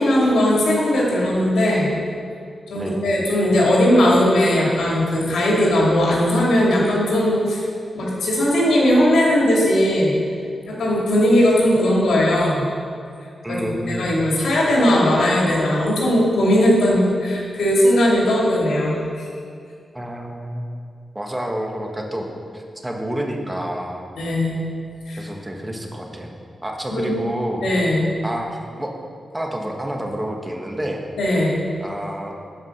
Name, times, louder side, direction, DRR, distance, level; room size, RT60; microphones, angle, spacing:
voice 1, 0.0-1.9 2.7-7.6 7.9-10.2 10.7-12.7 13.5-19.2 24.2-24.6 25.1-25.2 26.9-27.1 27.6-28.1 31.2-31.5, left 1 dB, 80° left, -4 dB, 2.6 m, -18 dB
voice 2, 2.7-3.1 13.4-14.1 19.9-20.7 21.1-22.3 22.5-24.1 25.2-26.3 26.6-27.7 28.2-29.0 29.3-31.0 31.8-32.3, right 1 dB, 15° right, 1 dB, 1.5 m, -29 dB
11.0 x 5.0 x 6.6 m, 2.4 s
cardioid pair, 60°, 0 cm